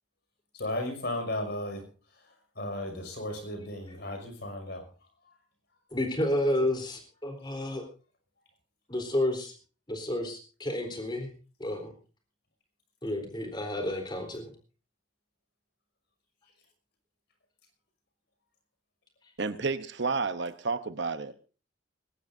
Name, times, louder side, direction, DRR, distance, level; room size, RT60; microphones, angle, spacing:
voice 1, 0.5-1.8 2.6-4.9, left 1 dB, 55° left, 5 dB, 6.0 m, -34 dB
voice 2, 5.9-7.8 8.9-9.5 9.9-11.3 11.6-11.9 13.0-14.5, left 1 dB, 20° left, 4 dB, 3.9 m, -30 dB
voice 3, 19.4-21.3, right 4 dB, 55° right, 11 dB, 0.9 m, -31 dB
21.0 x 18.0 x 2.7 m, 0.36 s
head